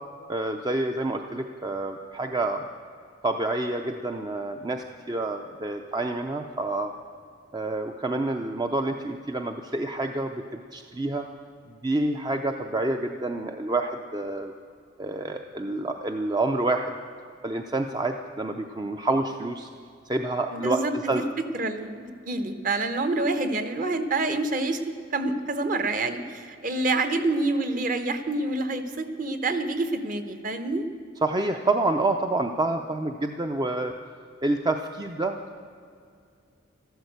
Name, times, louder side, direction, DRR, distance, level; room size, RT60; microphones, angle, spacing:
voice 1, 0.3-2.7 3.2-6.9 7.5-11.3 11.7-14.5 15.0-17.0 17.4-19.7 20.1-21.2 31.2-33.9 34.4-35.3, right 2 dB, 20° right, 5 dB, 0.5 m, -28 dB
voice 2, 20.5-30.8, right 2 dB, 40° right, 9 dB, 1.0 m, -27 dB
13.0 x 12.5 x 8.0 m, 2.4 s
head